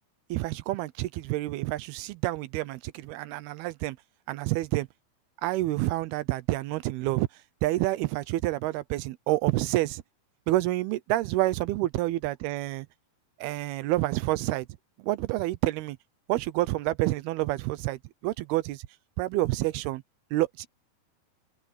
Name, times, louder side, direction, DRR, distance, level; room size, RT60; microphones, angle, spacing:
voice 1, 0.3-4.0 4.3-4.9 5.4-7.3 7.6-10.0 10.5-12.9 13.4-14.7 15.0-16.0 16.3-18.8 19.2-20.0 20.3-20.7, right 17 dB, 80° right, 2.6 m, -28 dB
omnidirectional pair, 4.6 m